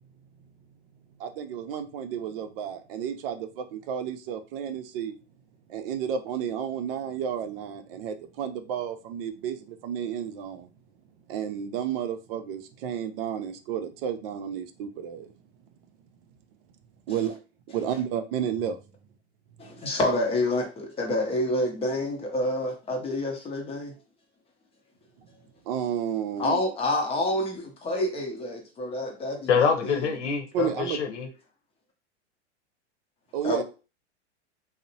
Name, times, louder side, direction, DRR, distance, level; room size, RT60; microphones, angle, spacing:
voice 1, 1.2-5.1 5.7-10.7 11.3-15.3 17.1-17.4 17.7-18.8 25.2-25.3 25.6-26.6 30.5-31.0 33.3-33.6, right 8 dB, 55° right, 0.5 m, -32 dB
voice 2, 19.6-23.9 26.4-29.5 29.8-30.0 33.4-33.6, left 1 dB, 15° left, 0.6 m, -28 dB
voice 3, 29.5-31.3, left 6 dB, 85° left, 0.8 m, -25 dB
2.7 x 2.0 x 2.6 m
hypercardioid pair, 120°, 34 cm